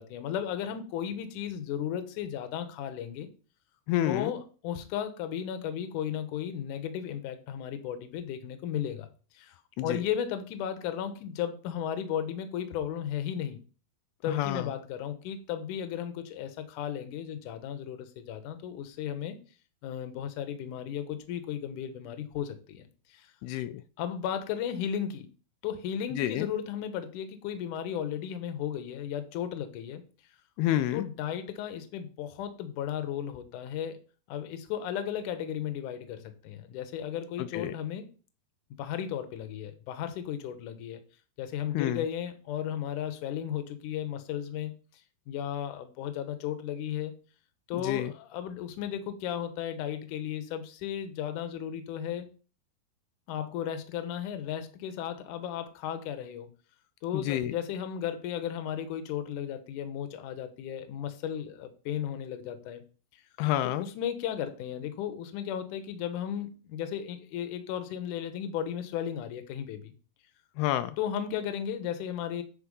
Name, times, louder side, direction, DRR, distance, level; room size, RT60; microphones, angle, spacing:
voice 1, 0.0-3.3 4.1-9.1 9.3-13.6 14.2-19.4 19.8-23.3 24.0-25.3 25.6-30.0 30.9-34.0 34.3-38.1 38.7-41.0 41.4-45.0 45.3-47.1 47.7-52.3 53.3-56.5 57.0-62.8 63.1-63.2 63.6-69.9 71.0-72.4, left 9 dB, 65° left, 8 dB, 2.2 m, -35 dB
voice 2, 3.9-4.3 9.8-10.0 14.3-14.7 23.4-23.8 26.1-26.5 30.6-31.0 37.4-37.7 41.7-42.1 47.8-48.1 57.1-57.5 63.4-63.9 70.6-71.0, left 13 dB, 85° left, 11 dB, 2.5 m, -29 dB
10.0 x 4.6 x 5.4 m, 0.37 s
omnidirectional pair, 4.6 m